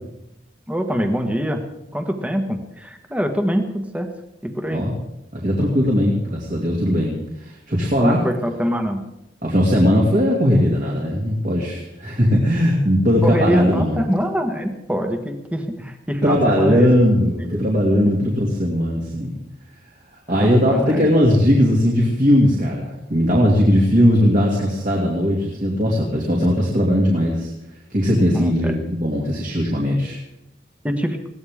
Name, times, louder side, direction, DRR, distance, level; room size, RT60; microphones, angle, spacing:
voice 1, 0.7-1.6 1.9-4.1 4.4-4.9 8.0-9.0 13.2-16.9 17.5-17.6 20.3-21.1 28.3-28.7 30.8-31.2, equal, 10° right, 4 dB, 1.5 m, -24 dB
voice 2, 5.3-8.2 9.4-14.0 16.2-19.3 20.3-27.5 27.9-30.2, equal, 45° right, -2 dB, 2.7 m, -18 dB
21.5 x 16.5 x 3.7 m, 0.88 s
head